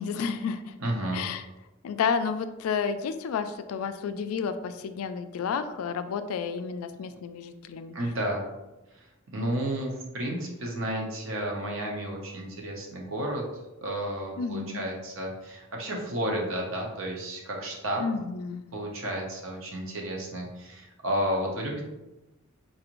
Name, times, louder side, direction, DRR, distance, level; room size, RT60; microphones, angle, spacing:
voice 1, 0.0-0.7 1.1-1.4 1.8-7.9 14.4-14.8 18.0-18.7, left 6 dB, 85° left, 11 dB, 0.3 m, -31 dB
voice 2, 0.8-1.3 7.9-8.4 9.0-9.1 9.3-13.4 13.8-18.0 18.7-21.8, right 1 dB, 65° right, -1 dB, 0.8 m, -32 dB
4.0 x 2.5 x 3.0 m, 1.0 s
head